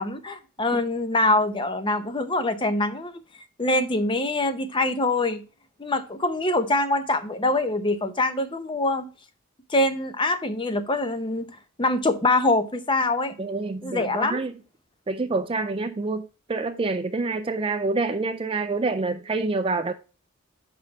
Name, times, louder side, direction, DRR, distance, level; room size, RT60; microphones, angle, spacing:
voice 1, 0.0-3.1 3.6-5.4 5.8-9.1 9.7-11.5 11.8-13.4 13.8-14.4, left 2 dB, 20° left, 0.7 m, -24 dB
voice 2, 13.4-14.5 15.1-19.9, right 3 dB, 25° right, 0.4 m, -27 dB
5.5 x 5.3 x 5.9 m
head